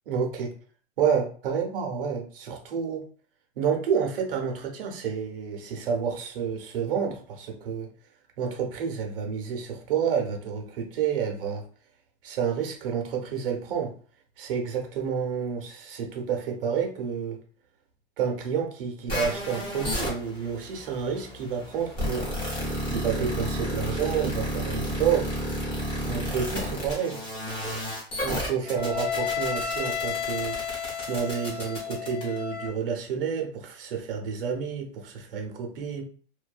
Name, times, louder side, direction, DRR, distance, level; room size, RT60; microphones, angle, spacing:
voice 1, 0.1-0.5 1.0-3.1 3.6-7.9 8.4-11.6 12.2-13.9 14.4-17.4 18.2-22.3 22.9-25.3 26.0-27.2 28.2-30.6 31.1-36.0, right 7 dB, 60° right, 2 dB, 0.7 m, -29 dB
sound 1, 19.1-32.7, left 1 dB, 20° left, 0.8 m, -31 dB
2.5 x 2.2 x 2.3 m, 0.43 s
supercardioid pair, 170°, 31 cm